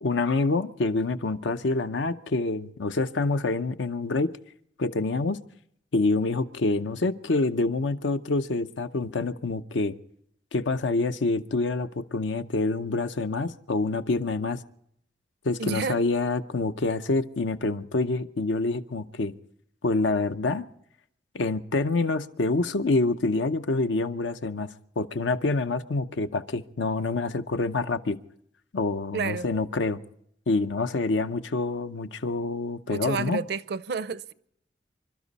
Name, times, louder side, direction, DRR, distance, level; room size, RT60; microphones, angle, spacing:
voice 1, 0.0-4.4 4.8-5.4 5.9-9.9 10.5-14.6 15.4-19.3 19.8-20.6 21.3-28.2 28.7-30.0 30.5-33.4, left 3 dB, 80° left, 0.7 m, -27 dB
voice 2, 15.6-16.0 29.1-29.5 32.9-34.3, right 5 dB, 60° right, 0.5 m, -30 dB
27.0 x 12.5 x 4.1 m
head